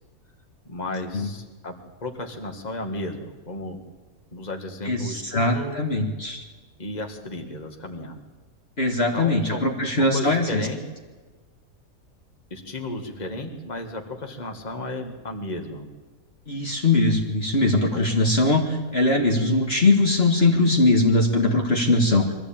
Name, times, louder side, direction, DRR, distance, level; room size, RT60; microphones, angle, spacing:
voice 1, 0.7-1.7 2.0-3.8 4.3-5.8 6.8-8.2 9.1-9.6 10.0-10.8 12.5-15.9 17.9-18.1, left 2 dB, 30° left, 3 dB, 2.1 m, -34 dB
voice 2, 4.8-6.4 8.8-10.6 16.5-22.3, left 2 dB, 45° left, 1 dB, 2.0 m, -21 dB
23.0 x 15.0 x 8.8 m, 1.3 s
omnidirectional pair, 1.5 m